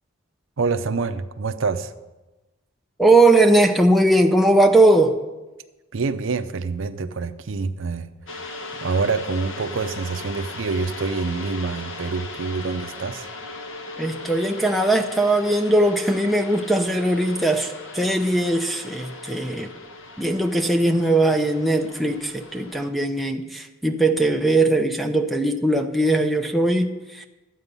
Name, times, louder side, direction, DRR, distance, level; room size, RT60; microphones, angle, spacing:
voice 1, 0.6-1.9 5.9-8.1 8.8-13.3, right 4 dB, 70° right, 11 dB, 0.5 m, -26 dB
voice 2, 3.0-5.2 14.0-19.7 20.2-27.3, right 2 dB, ahead, 2 dB, 0.6 m, -19 dB
sound 1, 8.3-22.9, left 2 dB, 65° left, 1.0 m, -38 dB
12.5 x 8.1 x 5.4 m, 1.1 s
head